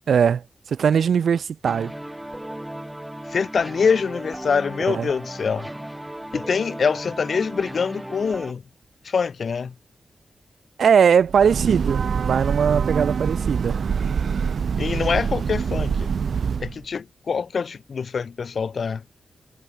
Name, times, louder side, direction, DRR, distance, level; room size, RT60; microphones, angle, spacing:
voice 1, 0.1-1.9 4.9-5.1 10.8-13.8, right 7 dB, 85° right, 1.4 m, -20 dB
sound 1, 1.7-8.5, right 1 dB, 5° right, 7.8 m, -36 dB
voice 2, 3.3-5.7 6.3-8.6 9.0-9.7 14.8-16.1 16.6-19.0, left 5 dB, 55° left, 1.0 m, -24 dB
Breathing / Train, 11.2-16.8, right 6 dB, 65° right, 3.4 m, -25 dB
wide cardioid pair, 160°, 0 cm